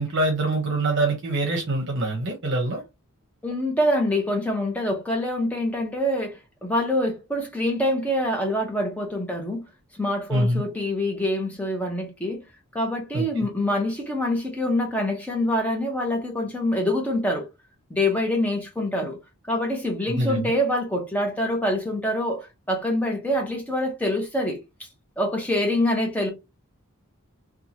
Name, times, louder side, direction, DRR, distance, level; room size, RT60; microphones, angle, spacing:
voice 1, 0.0-2.8 10.3-10.6 13.1-13.2 20.2-20.5, right 2 dB, 50° right, 0.8 m, -24 dB
voice 2, 3.4-9.7 9.9-12.4 12.7-17.5 17.9-19.2 19.5-24.6 25.2-26.3, left 1 dB, 5° left, 0.7 m, -25 dB
2.7 x 2.3 x 2.8 m
head